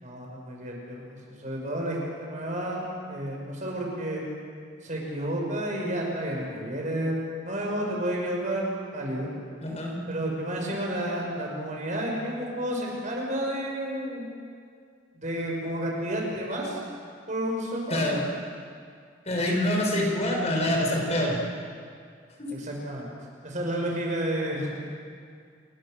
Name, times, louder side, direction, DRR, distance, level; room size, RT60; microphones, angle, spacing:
voice 1, 0.0-2.8 3.1-4.2 4.8-7.2 7.4-9.3 10.1-14.3 15.1-16.8 17.3-18.1 22.5-23.0 23.4-24.7, right 1 dB, 40° right, -1 dB, 6.2 m, -31 dB
voice 2, 9.6-9.9 17.9-18.3 19.3-21.4 22.4-22.5, left 1 dB, 35° left, 0 dB, 5.6 m, -26 dB
28.5 x 22.5 x 6.6 m, 2.2 s
head